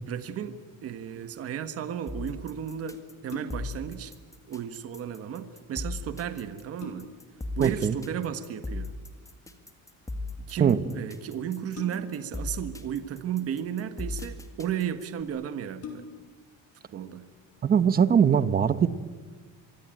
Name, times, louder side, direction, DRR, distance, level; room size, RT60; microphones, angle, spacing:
voice 1, 0.1-4.1 4.5-7.1 7.5-8.9 10.4-16.1 16.9-17.3, right 9 dB, 45° right, 10 dB, 1.5 m, -34 dB
sound 1, 2.1-15.2, left 2 dB, 10° left, 2.0 m, -38 dB
sound 2, 3.3-3.8 5.9-6.0 6.4-7.4 8.9-9.3 11.7-12.3 13.3-14.0 14.8-14.9 15.2-15.3 15.7-16.4 16.9-17.0, left 5 dB, 45° left, 4.8 m, -44 dB
voice 2, 7.6-8.0 10.6-10.8 17.6-18.9, right 7 dB, 25° right, 14 dB, 1.0 m, -21 dB
25.5 x 24.5 x 9.1 m, 1.4 s
cardioid pair, 175°, 33 cm